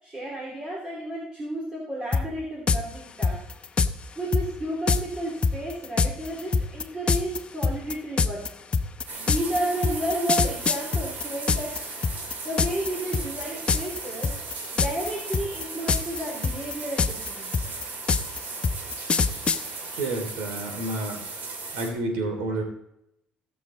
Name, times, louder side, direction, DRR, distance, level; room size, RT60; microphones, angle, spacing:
voice 1, 0.0-3.4 4.1-8.4 9.2-11.9 12.4-14.3 14.7-17.5, right 1 dB, 25° right, -3 dB, 3.3 m, -32 dB
sound 1, 2.1-2.2 2.7-2.8 3.2-3.9 4.3-4.5 4.9-5.0 5.4-11.8 12.0-12.9 13.1-13.4 13.7-14.0 14.2-15.1 15.3-16.2 16.4-19.6, left 5 dB, 35° left, 0.7 m, -23 dB
sound 2, 9.1-21.9, right 3 dB, 60° right, 2.8 m, -37 dB
voice 2, 20.0-21.2 21.7-22.6, right 2 dB, 85° right, 3 dB, 3.0 m, -29 dB
17.0 x 6.5 x 4.2 m, 0.80 s
cardioid pair, 95°, 3 cm